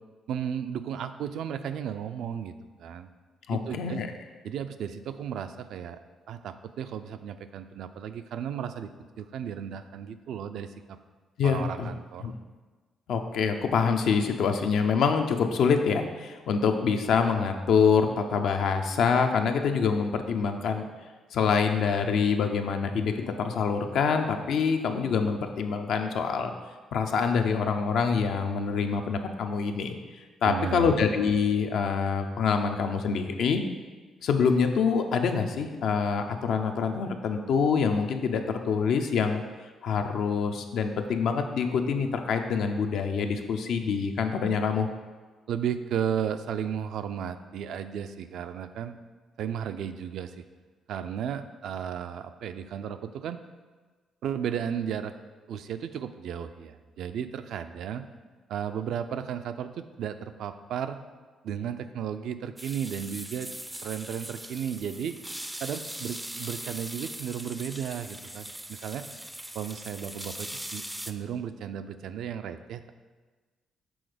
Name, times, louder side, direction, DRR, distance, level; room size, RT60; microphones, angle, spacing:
voice 1, 0.3-3.1 3.5-4.0 4.4-6.0 6.3-8.9 9.2-11.0 11.4-12.3 30.5-30.9 45.5-49.0 49.4-50.4 50.9-53.4 54.2-55.1 55.5-58.0 58.5-61.0 61.4-63.5 63.8-65.2 65.6-69.0 69.5-72.9, right 8 dB, 75° right, 9 dB, 0.4 m, -34 dB
voice 2, 3.5-4.1 11.4-11.9 12.2-12.4 13.1-20.8 21.3-26.5 26.9-30.0 30.4-33.6 34.2-39.4 39.8-44.9, left 5 dB, 75° left, 5 dB, 0.6 m, -25 dB
sound 1, 62.6-71.1, right 1 dB, 5° right, 0.4 m, -40 dB
6.2 x 3.9 x 5.0 m, 1.3 s
cardioid pair, 90°, 0 cm